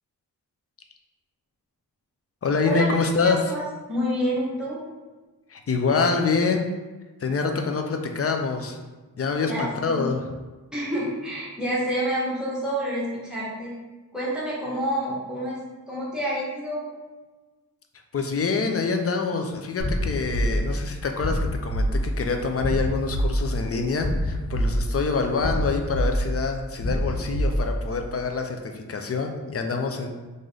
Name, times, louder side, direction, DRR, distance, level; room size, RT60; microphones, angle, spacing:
voice 1, 2.4-3.4 5.5-6.7 7.2-8.8 9.2-10.3 18.1-30.1, left 4 dB, 40° left, 4 dB, 0.5 m, -26 dB
voice 2, 3.2-3.6 3.9-4.8 9.5-10.1 10.7-13.8 14.1-16.9, equal, ahead, -8 dB, 1.3 m, -28 dB
sound 1, 19.8-28.1, equal, 90° left, 1.0 m, -26 dB
3.1 x 2.6 x 3.7 m, 1.2 s
wide cardioid pair, 95°, 37 cm